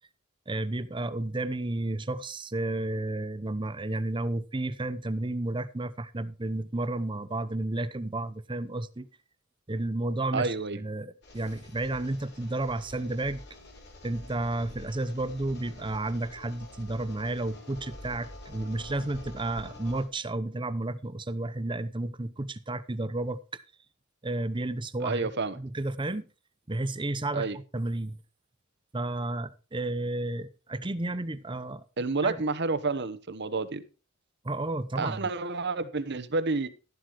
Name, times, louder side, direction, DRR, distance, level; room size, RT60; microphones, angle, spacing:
voice 1, 0.5-9.1 9.7-13.4 14.0-23.6 24.2-26.3 26.7-27.5 27.7-28.2 28.9-31.8 32.2-32.4 34.4-35.3, right 2 dB, 25° right, 0.8 m, -32 dB
voice 2, 10.3-10.8 25.0-25.6 27.3-27.6 32.0-33.8 35.0-36.7, right 3 dB, 55° right, 1.1 m, -29 dB
sound 1, 11.2-20.0, left 1 dB, 55° left, 5.4 m, -47 dB
12.5 x 11.5 x 3.1 m
head